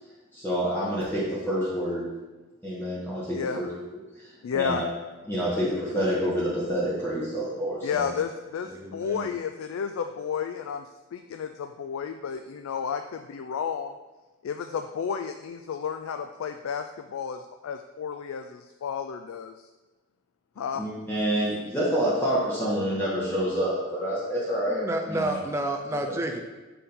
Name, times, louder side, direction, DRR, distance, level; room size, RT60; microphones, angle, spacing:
voice 1, 0.3-2.1 2.6-3.7 4.5-4.9 5.3-8.1 20.7-24.8 25.1-25.4 26.1-26.2, equal, 10° left, -9 dB, 1.3 m, -27 dB
voice 2, 4.4-4.8 7.8-13.9 14.4-19.6 20.6-20.8, left 7 dB, 70° left, 7 dB, 0.3 m, -32 dB
voice 3, 8.7-9.4 24.7-26.4, right 1 dB, 15° right, 2 dB, 0.5 m, -30 dB
6.8 x 3.6 x 5.5 m, 1.2 s
head